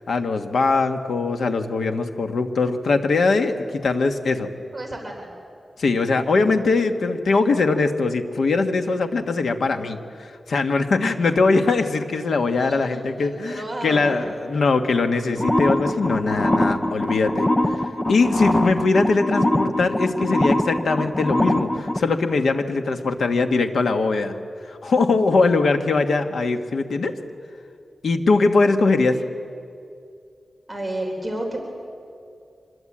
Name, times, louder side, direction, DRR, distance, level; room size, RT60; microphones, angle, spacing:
voice 1, 0.1-4.5 5.8-17.8 18.1-24.3 24.7-27.1 28.0-29.2, left 3 dB, 85° left, 6 dB, 1.5 m, -21 dB
voice 2, 4.7-5.3 12.5-12.8 13.2-14.2 29.1-29.3 30.7-31.6, right 1 dB, 10° right, 0 dB, 3.7 m, -31 dB
sound 1, 15.4-22.0, left 1 dB, 20° left, 0.8 m, -22 dB
25.5 x 21.5 x 8.8 m, 2.4 s
wide cardioid pair, 150°, 0 cm